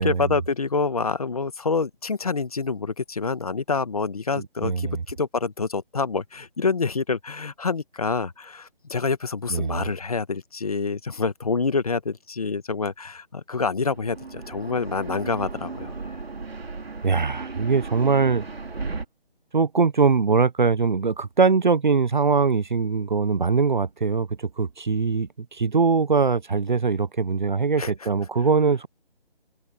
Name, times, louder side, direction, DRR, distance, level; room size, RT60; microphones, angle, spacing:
voice 1, 0.0-15.9 27.8-28.1, left 4 dB, 40° left, 1.5 m, -27 dB
voice 2, 4.6-5.0 9.5-9.8 17.0-18.4 19.5-28.9, right 5 dB, 50° right, 0.8 m, -22 dB
sound 1, 13.8-19.0, right 4 dB, 80° right, 3.3 m, -35 dB
hypercardioid pair, 175°, 30 cm